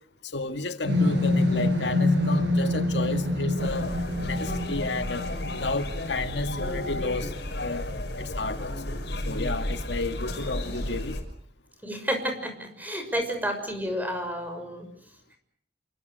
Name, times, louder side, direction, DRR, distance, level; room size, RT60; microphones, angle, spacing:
voice 1, 0.2-3.9 4.2-7.9 8.2-8.8 9.2-11.2, left 2 dB, 85° left, 2.0 m, -32 dB
sound 1, 0.9-6.1, left 1 dB, 90° right, 7.3 m, -26 dB
sound 2, 3.6-11.2, left 1 dB, 70° left, 6.3 m, -33 dB
voice 2, 11.8-14.9, equal, 10° right, 6.4 m, -30 dB
28.0 x 25.0 x 6.6 m
head